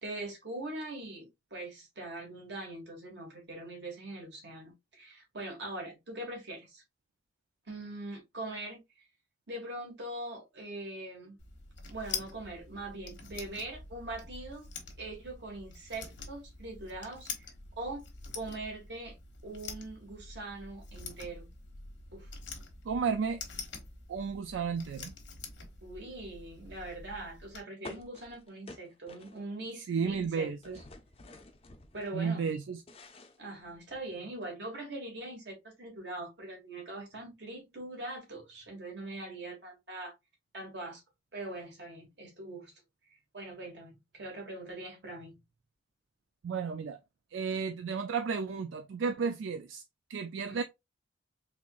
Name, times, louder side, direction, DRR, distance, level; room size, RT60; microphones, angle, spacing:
voice 1, 0.0-6.8 7.7-8.8 9.5-11.3 11.9-14.7 15.0-18.1 18.3-19.1 19.4-21.5 22.1-22.3 25.8-30.7 31.9-32.5 33.4-40.1 40.5-41.0 41.3-42.7 43.3-45.4 50.5-50.6, right 2 dB, 65° right, 1.6 m, -42 dB
sound 1, 11.4-27.6, left 5 dB, 80° left, 1.1 m, -46 dB
voice 2, 22.9-23.4 24.1-25.1 29.9-30.8 32.1-32.8 46.4-47.0 47.3-49.8 50.1-50.6, right 5 dB, 85° right, 0.4 m, -33 dB
sound 2, 27.8-29.7 30.0-32.1 32.5-34.1, left 2 dB, 30° left, 0.5 m, -51 dB
3.9 x 3.0 x 2.4 m
head